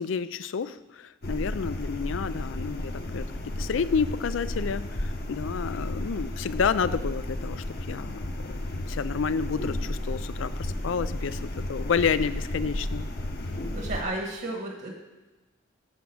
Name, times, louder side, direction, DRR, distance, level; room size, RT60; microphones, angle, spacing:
voice 1, 0.0-11.4 11.7-13.1, left 6 dB, 75° left, 15 dB, 0.4 m, -30 dB
sound 1, 1.2-14.0, left 1 dB, 50° left, 1.1 m, -33 dB
voice 2, 13.7-15.0, right 2 dB, 55° right, 1 dB, 1.5 m, -33 dB
10.5 x 5.1 x 7.1 m, 1.1 s
head